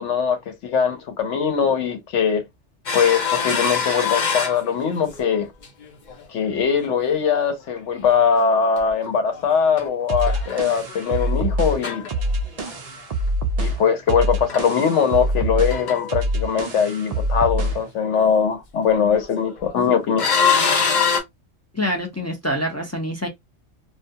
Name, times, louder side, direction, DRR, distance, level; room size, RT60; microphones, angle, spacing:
voice 1, 0.0-2.4 2.9-5.5 6.3-12.0 13.6-20.3, left 6 dB, 85° left, 1.1 m, -21 dB
sound 1, 2.9-5.4 5.6-6.2 6.6-6.8 8.8-9.9 10.2-11.3 11.8-12.8 13.7-13.8 14.2-14.3 14.5-14.7 15.0-15.4 15.7-16.2 19.0-19.7 20.2-21.2, left 6 dB, 45° left, 0.7 m, -24 dB
sound 2, 10.1-17.9, right 1 dB, 70° right, 0.3 m, -25 dB
voice 2, 21.7-23.3, equal, 25° left, 0.3 m, -25 dB
2.4 x 2.2 x 2.7 m
omnidirectional pair, 1.2 m